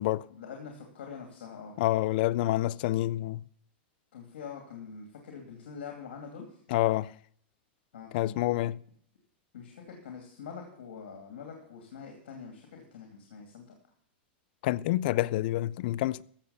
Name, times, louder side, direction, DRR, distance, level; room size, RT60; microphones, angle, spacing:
voice 1, 0.3-1.8 4.1-6.6 7.9-8.5 9.5-13.6, left 6 dB, 85° left, 2.6 m, -44 dB
voice 2, 1.8-3.4 6.7-7.1 8.1-8.8 14.6-16.2, left 16 dB, 60° left, 0.4 m, -27 dB
15.0 x 6.5 x 7.0 m
supercardioid pair, 145°, 6 cm